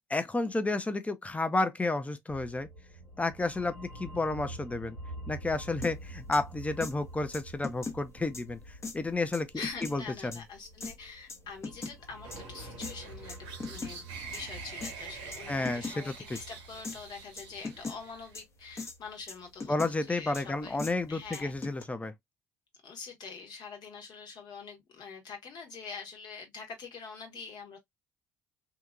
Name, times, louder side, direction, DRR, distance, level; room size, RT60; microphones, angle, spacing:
voice 1, 0.1-2.7 3.2-5.0 5.3-10.4 15.5-16.4 19.7-22.1, left 2 dB, 15° left, 0.6 m, -31 dB
sound 1, 2.3-21.6, right 1 dB, 85° left, 1.3 m, -48 dB
sound 2, 5.8-5.9 6.3-6.4 6.8-6.9 7.3-8.0 8.3-8.4 8.8-9.0 9.3-9.9 10.3-10.4 10.8-10.9 11.3-11.9 12.3-12.4 12.8-12.9 13.3-13.9 14.3-14.4 14.8-14.9 15.3-15.4 15.6-16.0 16.3-16.4 16.8-17.0 17.4-18.0 18.3-18.4 18.8-19.0 19.3-19.9 20.3-20.4 20.8-20.9 21.3-21.8, left 4 dB, 30° left, 0.9 m, -38 dB
voice 2, 9.5-13.4 13.7-20.8 21.1-21.5 22.8-27.8, left 5 dB, 55° left, 1.2 m, -45 dB
sound 3, 12.2-18.4, right 5 dB, 70° right, 0.8 m, -46 dB
2.8 x 2.5 x 2.3 m
hypercardioid pair, 55°, 9 cm